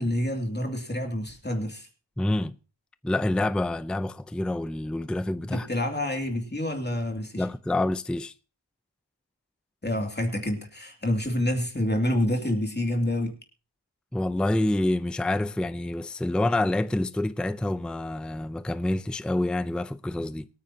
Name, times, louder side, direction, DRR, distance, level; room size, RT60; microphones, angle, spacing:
voice 1, 0.0-1.9 5.5-7.5 9.8-13.3, left 1 dB, 20° left, 2.7 m, -28 dB
voice 2, 2.2-2.6 3.0-5.7 7.4-8.3 14.1-20.5, left 1 dB, ahead, 0.5 m, -27 dB
23.0 x 9.3 x 2.8 m
wide cardioid pair, 90°, 47 cm